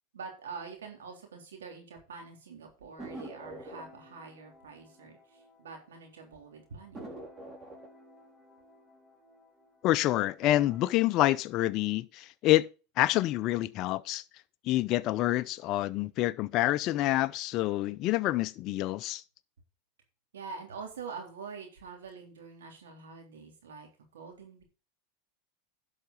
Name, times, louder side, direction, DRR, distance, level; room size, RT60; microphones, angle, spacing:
voice 1, 0.1-7.1 20.3-23.9 24.1-24.6, right 5 dB, 90° right, 3.7 m, -45 dB
sound 1, 3.0-6.0 6.3-6.4 6.9-9.9 10.3-10.9, right 1 dB, 20° right, 3.8 m, -47 dB
voice 2, 9.8-12.7 13.0-14.2 14.6-19.2, left 15 dB, 45° left, 0.6 m, -27 dB
11.0 x 5.9 x 5.4 m
hypercardioid pair, 110°, 0 cm